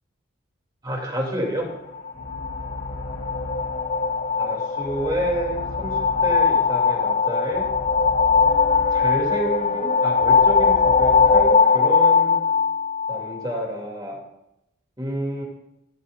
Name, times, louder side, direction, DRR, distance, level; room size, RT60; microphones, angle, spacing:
voice 1, 0.8-1.7 4.4-7.7 8.9-12.4 13.1-14.2 15.0-15.4, equal, 20° right, -1 dB, 2.8 m, -29 dB
sound 1, 1.5-11.5, left 1 dB, 65° left, 4.9 m, -38 dB
sound 2, 1.9-13.6, left 5 dB, 30° left, 0.3 m, -20 dB
Wind instrument woodwind instrument, 8.3-13.1, right 1 dB, 65° right, 2.9 m, -45 dB
16.0 x 12.5 x 2.6 m, 0.86 s
head